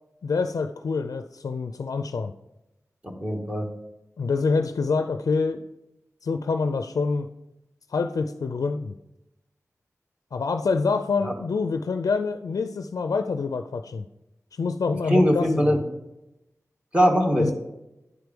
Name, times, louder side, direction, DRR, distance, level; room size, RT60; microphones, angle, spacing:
voice 1, 0.2-2.3 4.2-5.6 6.2-7.3 7.9-8.9 10.3-14.1 14.5-15.7 17.4-17.5, left 4 dB, 90° left, 8 dB, 0.4 m, -26 dB
voice 2, 3.0-3.7 11.2-11.3 15.1-15.8 16.9-17.5, equal, 20° right, 3 dB, 1.6 m, -21 dB
9.8 x 4.6 x 5.2 m, 0.93 s
wide cardioid pair, 70°, 6 cm